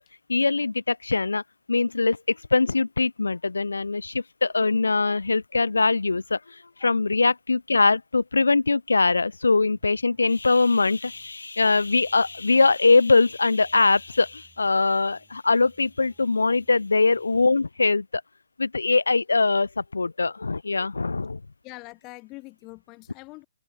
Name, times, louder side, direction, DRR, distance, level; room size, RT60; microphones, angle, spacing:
voice 1, 0.3-1.4 1.7-18.2 18.6-21.4, left 3 dB, 70° left, 0.4 m, -22 dB
sound 1, 9.6-17.5, right 5 dB, 10° right, 3.0 m, -64 dB
voice 2, 21.6-23.4, left 23 dB, 25° left, 2.9 m, -43 dB
open air
figure-of-eight pair, 130°, 0 cm